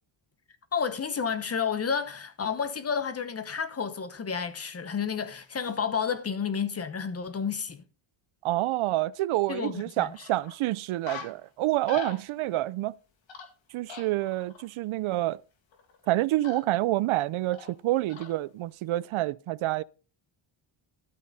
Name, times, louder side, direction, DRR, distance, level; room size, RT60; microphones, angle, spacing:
voice 1, 0.7-7.8 9.5-10.1, left 6 dB, 30° left, 1.0 m, -31 dB
voice 2, 8.4-12.9 13.7-15.4 16.1-19.8, right 16 dB, 75° right, 0.6 m, -28 dB
sound 1, 9.5-9.6 10.1-10.5 10.9-11.4 11.7-12.6 13.3-13.5 13.9-14.7 15.7-16.1 16.4-16.6 17.5-17.7 18.1-18.5 18.9-19.0, left 5 dB, 65° left, 2.3 m, -42 dB
12.5 x 8.4 x 4.0 m
cardioid pair, 150°, 49 cm